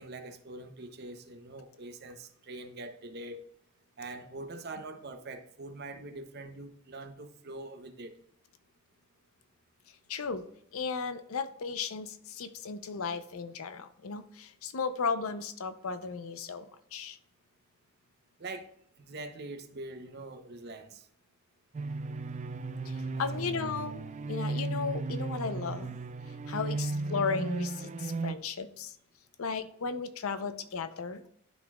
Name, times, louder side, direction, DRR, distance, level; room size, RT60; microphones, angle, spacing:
voice 1, 0.0-3.5 4.0-8.2 18.4-18.7 19.0-21.1 23.1-23.2 23.5-23.7 26.6-26.8, right 2 dB, 50° right, 0.8 m, -43 dB
voice 2, 10.1-10.5 10.7-16.7 16.9-17.2 22.8-24.0 24.3-25.9 26.3-29.0 29.4-31.3, left 5 dB, 80° left, 0.6 m, -35 dB
sound 1, 21.7-28.3, right 3 dB, 35° right, 0.3 m, -35 dB
11.5 x 4.0 x 2.3 m
head